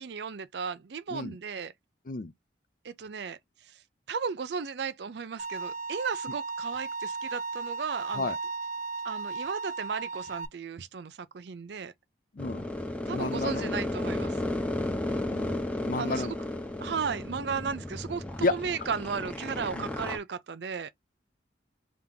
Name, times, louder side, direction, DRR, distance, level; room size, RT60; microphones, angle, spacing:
voice 1, 0.0-1.7 2.8-3.4 3.6-3.8 4.1-8.3 9.0-11.9 13.1-14.4 16.0-16.4 16.8-20.9, right 6 dB, 65° right, 0.5 m, -35 dB
Bowed string instrument, 5.4-10.5, right 4 dB, 40° right, 0.8 m, -35 dB
voice 2, 12.3-12.7 13.1-13.7 15.3-16.3 18.4-18.6 19.7-19.9, left 3 dB, 50° left, 0.5 m, -31 dB
sound 1, 12.4-20.2, left 1 dB, 5° left, 0.7 m, -33 dB
3.6 x 2.9 x 3.6 m
head